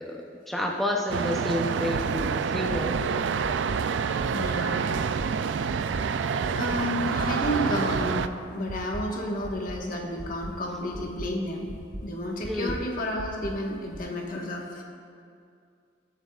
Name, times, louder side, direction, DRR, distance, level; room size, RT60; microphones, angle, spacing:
voice 1, 0.1-2.9 12.5-12.7, left 1 dB, ahead, -2 dB, 0.5 m, -30 dB
sound 1, 1.1-8.3, right 6 dB, 70° right, 0.4 m, -27 dB
sound 2, 2.2-2.3 2.7-3.0 3.4-3.8 4.2-4.5 4.9-5.3 5.7-6.0 6.4-6.8 7.2-7.5 7.9-8.3 8.7-9.0 9.4-9.8 10.2-10.5 10.9-11.3 11.7-12.0 12.4-12.8 13.2-13.5 13.9-14.0, right 1 dB, 45° right, 0.8 m, -37 dB
voice 2, 4.3-5.0 5.4-5.8 6.5-11.7 12.0-14.8, left 1 dB, 45° left, -1 dB, 1.3 m, -31 dB
21.0 x 8.1 x 2.4 m, 2.4 s
head